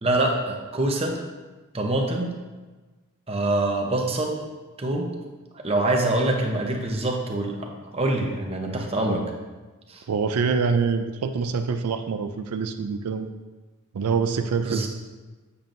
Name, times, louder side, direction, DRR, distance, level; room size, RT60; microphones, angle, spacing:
voice 1, 0.0-1.2 1.7-2.3 3.3-4.4 4.8-5.1 5.5-9.2 9.9-10.0 14.7-14.9, right 2 dB, 25° right, 1 dB, 0.8 m, -25 dB
voice 2, 10.1-13.3 13.9-14.9, right 5 dB, 85° right, 8 dB, 0.4 m, -25 dB
7.4 x 7.0 x 2.6 m, 1.3 s
head